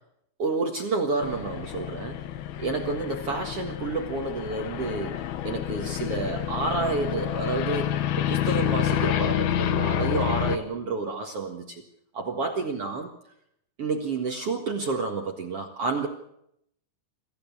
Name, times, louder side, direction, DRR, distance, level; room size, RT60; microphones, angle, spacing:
voice 1, 0.4-2.2 2.6-7.9 8.2-11.8 12.1-13.1 13.8-16.1, right 3 dB, 50° right, 3 dB, 2.0 m, -29 dB
sound 1, 1.2-10.6, left 10 dB, 75° left, 3.0 m, -28 dB
26.5 x 15.0 x 7.2 m, 0.77 s
omnidirectional pair, 4.5 m